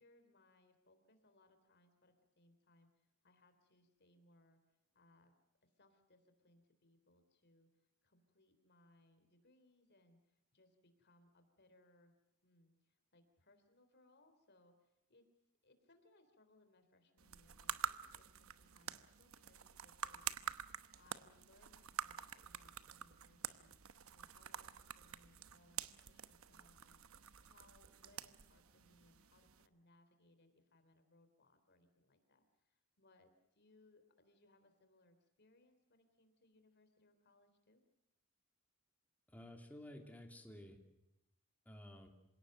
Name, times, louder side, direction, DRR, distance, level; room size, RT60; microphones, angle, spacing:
voice 1, 0.0-4.6 4.9-5.3 5.6-12.1 12.4-15.2 15.6-37.8, left 2 dB, 50° left, 8 dB, 3.3 m, -71 dB
sound 1, 17.2-29.7, right 8 dB, 65° right, 1.0 m, -48 dB
voice 2, 39.3-40.8 41.6-42.1, left 1 dB, 5° left, 3 dB, 3.0 m, -53 dB
27.0 x 17.5 x 7.8 m, 0.91 s
head